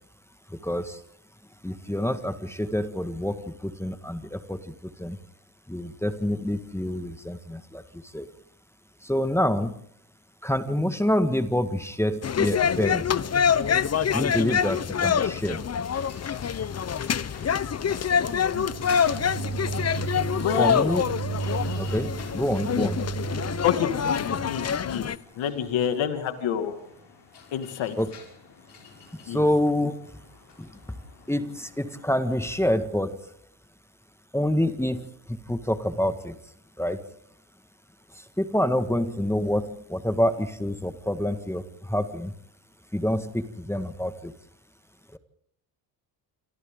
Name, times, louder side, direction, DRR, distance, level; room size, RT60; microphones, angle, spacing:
voice 1, 0.6-1.0 1.6-3.4 3.6-5.2 5.7-7.8 8.1-8.3 9.0-9.7 10.4-13.1 14.1-15.6 20.6-21.0 21.8-23.1 28.0-28.1 29.3-29.9 30.6-30.7 31.3-33.3 34.3-35.0 35.3-36.4 36.8-37.0 38.4-42.3 42.9-44.3 45.1-45.2, left 1 dB, 5° left, 9 dB, 1.7 m, -27 dB
sound 1, 12.2-25.2, left 7 dB, 35° left, 0.8 m, -26 dB
sound 2, 15.2-32.6, left 6 dB, 60° left, 5.8 m, -49 dB
sound 3, 18.5-24.5, right 5 dB, 70° right, 2.7 m, -34 dB
voice 2, 20.4-20.8 23.6-25.1 25.4-26.7 27.5-28.0 29.3-29.4, left 9 dB, 85° left, 7 dB, 2.3 m, -27 dB
27.5 x 26.0 x 3.8 m, 0.66 s
cardioid pair, 75°, 45 cm